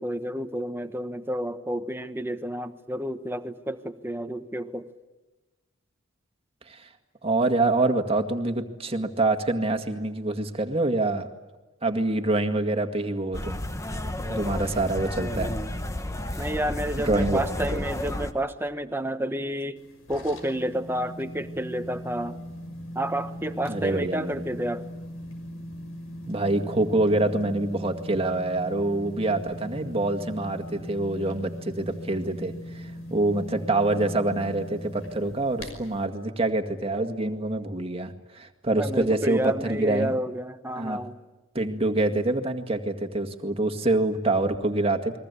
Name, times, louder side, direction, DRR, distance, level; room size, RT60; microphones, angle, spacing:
voice 1, 0.0-4.9 16.4-19.8 20.1-22.4 22.9-24.9 38.7-41.2, right 1 dB, 10° right, 8 dB, 1.1 m, -30 dB
voice 2, 7.2-11.3 11.8-13.6 14.3-15.6 16.3-16.4 17.0-17.4 17.7-17.8 23.6-24.5 26.3-40.1 40.8-41.0 41.5-45.2, right 2 dB, 25° right, 5 dB, 2.0 m, -26 dB
sound 1, 13.3-18.3, left 1 dB, 15° left, 1.2 m, -32 dB
sound 2, 19.8-36.1, equal, 70° left, 5.8 m, -40 dB
29.5 x 22.0 x 8.4 m, 1.2 s
head